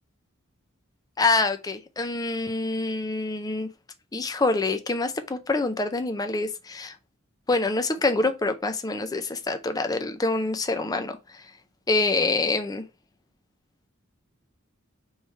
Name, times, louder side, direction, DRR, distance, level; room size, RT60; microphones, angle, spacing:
voice 1, 1.2-3.7 4.1-6.9 7.5-11.2 11.9-12.8, left 3 dB, 20° left, 0.5 m, -26 dB
3.5 x 3.2 x 4.1 m
head